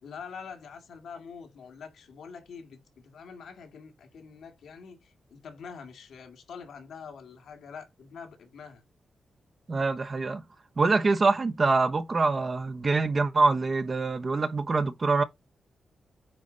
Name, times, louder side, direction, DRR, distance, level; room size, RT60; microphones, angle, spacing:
voice 1, 0.0-8.8, left 6 dB, 85° left, 2.0 m, -45 dB
voice 2, 9.7-10.4 10.8-15.2, right 3 dB, 45° right, 1.0 m, -25 dB
9.1 x 3.1 x 3.9 m
cardioid pair, 60°, 0 cm